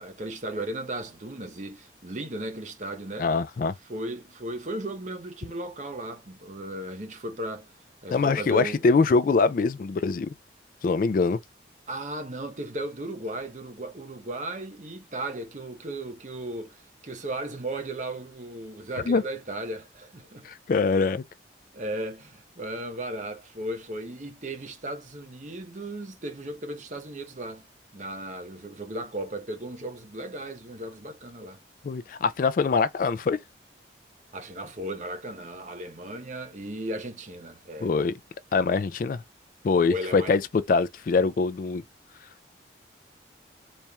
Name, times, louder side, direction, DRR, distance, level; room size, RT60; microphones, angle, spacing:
voice 1, 0.0-3.3 3.8-7.7 8.0-8.8 11.9-20.5 21.7-27.6 27.9-31.6 34.3-37.9 39.9-40.3, right 1 dB, 40° right, 0.8 m, -36 dB
voice 2, 3.2-3.7 8.1-10.3 10.8-11.4 19.1-19.2 20.4-21.2 31.8-33.4 37.8-38.1 38.5-39.2 39.6-41.8, left 4 dB, 45° left, 0.3 m, -23 dB
4.2 x 3.3 x 2.3 m
head